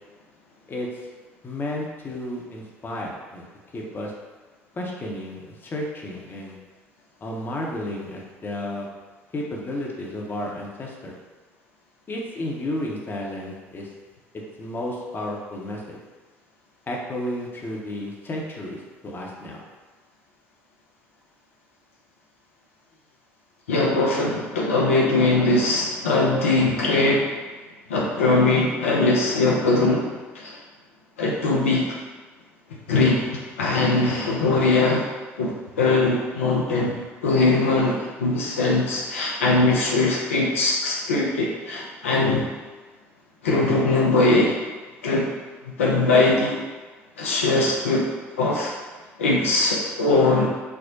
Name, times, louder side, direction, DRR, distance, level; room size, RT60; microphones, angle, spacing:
voice 1, 0.7-1.1 1.4-3.4 3.7-4.1 4.7-6.6 7.2-8.9 9.3-11.2 12.1-13.9 14.6-16.0 16.9-19.6, left 1 dB, 30° left, -2 dB, 0.7 m, -32 dB
voice 2, 23.7-27.3 27.9-30.6 31.2-32.0 32.9-35.1 35.4-42.5 43.4-44.6 45.0-45.3 45.7-46.6 47.2-48.8 49.2-50.5, left 2 dB, 80° left, -3 dB, 0.4 m, -21 dB
4.4 x 2.1 x 2.7 m, 1.3 s
figure-of-eight pair, 55°, 7 cm